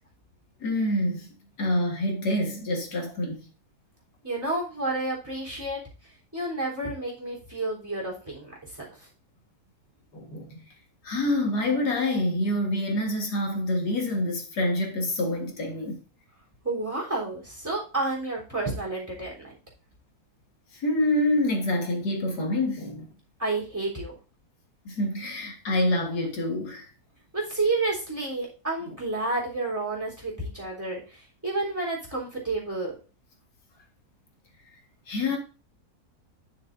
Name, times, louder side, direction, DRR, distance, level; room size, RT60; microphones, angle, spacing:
voice 1, 0.6-1.3 1.6-3.5 10.1-10.6 11.0-16.0 20.7-23.1 24.9-26.9 35.1-35.4, left 1 dB, 85° left, 2.3 m, -27 dB
voice 2, 4.2-5.8 6.3-8.9 16.6-19.5 23.4-24.2 27.3-32.9, right 2 dB, 10° right, 3.5 m, -30 dB
11.0 x 6.5 x 2.6 m
omnidirectional pair, 1.7 m